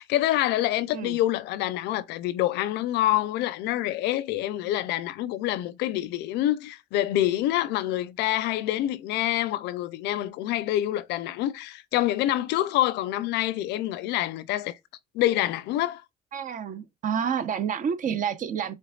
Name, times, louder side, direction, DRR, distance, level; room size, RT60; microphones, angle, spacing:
voice 1, 0.0-14.8 15.1-16.0, left 14 dB, 90° left, 0.6 m, -26 dB
voice 2, 16.3-18.7, right 7 dB, 50° right, 0.8 m, -29 dB
5.3 x 3.4 x 2.4 m
cardioid pair, 110°, 17 cm